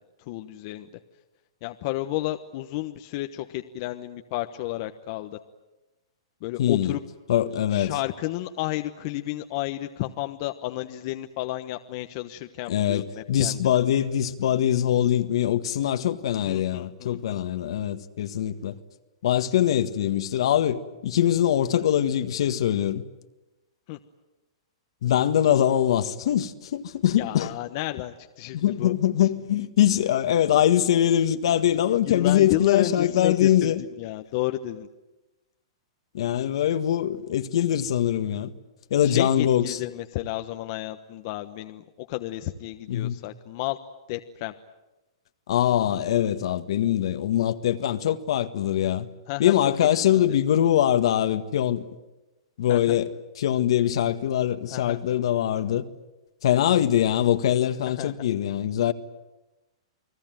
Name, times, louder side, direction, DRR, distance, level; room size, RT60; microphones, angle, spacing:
voice 1, 0.3-0.9 1.6-5.4 6.4-7.0 7.7-13.6 16.5-17.4 23.9-24.0 27.2-28.9 32.0-33.7 34.0-34.9 39.0-43.8 44.1-44.5 49.3-49.5 52.7-53.0 54.7-55.0 58.0-58.1, left 16 dB, 45° left, 1.2 m, -31 dB
voice 2, 6.6-6.9 7.3-7.9 12.7-18.8 19.2-23.0 25.0-27.5 28.5-33.8 36.1-38.5 38.9-39.8 42.9-43.1 45.5-49.1 49.4-51.9 52.6-53.1 53.4-55.9 56.4-58.9, left 11 dB, 65° left, 1.7 m, -23 dB
29.5 x 20.5 x 9.3 m
hypercardioid pair, 145°, 3 cm